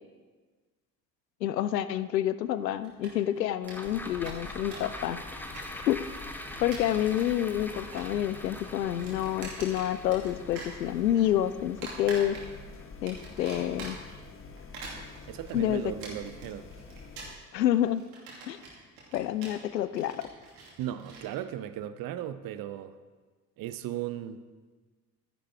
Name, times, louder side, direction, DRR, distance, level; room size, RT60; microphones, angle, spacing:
voice 1, 1.4-5.2 5.9-6.0 6.6-12.4 13.0-14.0 15.5-15.8 17.5-18.0 18.5-18.6 19.1-20.3, left 11 dB, 80° left, 14 dB, 0.5 m, -28 dB
sound 1, 2.8-3.4 3.7-3.8 4.0-5.0 5.2-6.1 6.5-7.3 7.6-8.2 8.4-10.3 10.5-11.3 11.8-12.7 13.1-14.2 14.6-21.3, right 3 dB, 60° right, 2.8 m, -44 dB
sound 2, 3.6-14.1 14.5-14.6, left 1 dB, 5° left, 1.0 m, -44 dB
sound 3, 3.8-17.4, left 4 dB, 25° left, 1.2 m, -47 dB
voice 2, 15.3-16.7 20.8-22.9 23.6-24.4, right 11 dB, 45° right, 13 dB, 0.7 m, -36 dB
12.0 x 10.0 x 4.5 m, 1.4 s
figure-of-eight pair, 50°, 49 cm